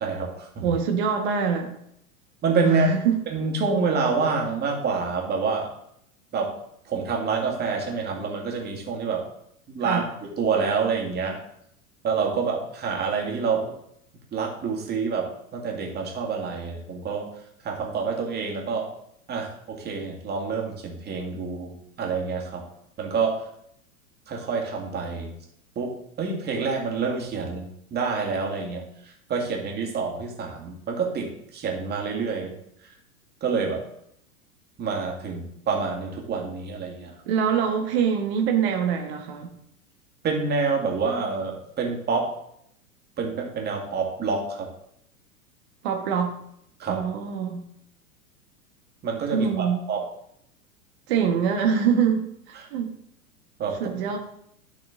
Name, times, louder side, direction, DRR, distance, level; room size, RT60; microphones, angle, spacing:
voice 1, 0.0-0.7 2.4-2.9 3.3-5.7 6.3-6.5 6.9-9.2 9.7-10.0 10.4-11.3 12.0-13.7 14.3-15.2 15.5-17.3 17.6-18.8 19.3-22.6 23.0-23.3 24.3-25.3 25.8-25.9 26.2-28.8 29.3-31.3 31.5-32.5 33.4-33.8 34.8-37.1 40.2-42.2 43.2-44.7 46.8-47.0 49.0-50.0 52.5-52.7 53.6-54.0, right 5 dB, 20° right, 0 dB, 2.1 m, -27 dB
voice 2, 0.6-1.7 2.6-3.2 9.8-10.1 37.3-39.5 45.8-46.3 46.8-47.6 49.3-49.9 51.1-52.9 53.8-54.2, right 7 dB, 45° right, 3 dB, 1.3 m, -24 dB
11.5 x 5.9 x 3.7 m, 0.73 s
figure-of-eight pair, 95°, 44 cm